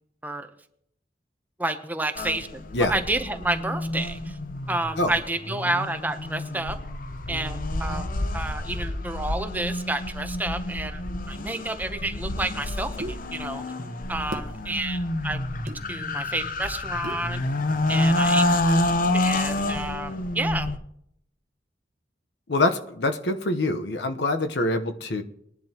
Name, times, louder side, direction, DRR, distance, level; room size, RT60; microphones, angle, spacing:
voice 1, 1.6-2.6 2.9-4.4 4.7-6.8 7.3-13.6 14.1-15.4 15.9-17.4 17.9-18.8 19.1-20.7, right 2 dB, 10° right, 7 dB, 0.8 m, -30 dB
sound 1, 2.2-20.8, left 1 dB, 50° left, 0.8 m, -28 dB
sound 2, 13.0-13.2 14.3-14.5 15.7-15.8 17.0-17.3, right 1 dB, 55° right, 1.1 m, -34 dB
voice 2, 22.5-25.2, left 2 dB, 75° left, 7 dB, 1.0 m, -25 dB
20.5 x 10.5 x 2.9 m, 0.72 s
head